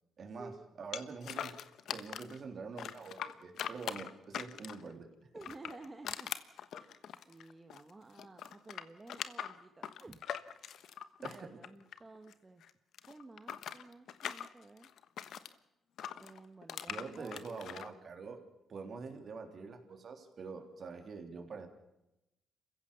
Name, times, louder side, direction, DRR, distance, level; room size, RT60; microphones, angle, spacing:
voice 1, 0.2-1.6 1.9-5.1 11.2-11.6 16.9-18.4 18.7-21.7, right 4 dB, 50° right, 5 dB, 3.6 m, -45 dB
sound 1, 0.9-2.4 2.8-4.9 5.4-7.9 8.2-12.3 12.6-15.5 16.0-17.9, left 9 dB, 70° left, 1.2 m, -42 dB
voice 2, 5.3-6.3 6.7-10.2 10.6-10.9 11.2-12.6 13.1-14.9 16.2-17.4, right 2 dB, 20° right, 6 dB, 1.4 m, -53 dB
28.0 x 16.0 x 7.0 m, 0.90 s
cardioid pair, 90°, 0 cm